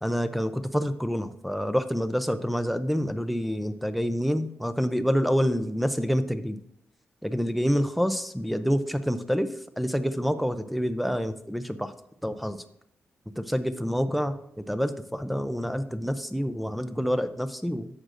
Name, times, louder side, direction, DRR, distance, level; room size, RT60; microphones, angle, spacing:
voice 1, 0.0-6.6 7.2-9.5 9.8-11.9 12.2-12.6 13.4-17.9, equal, ahead, 11 dB, 0.5 m, -27 dB
11.5 x 7.6 x 2.6 m, 0.77 s
wide cardioid pair, 140°, 5 cm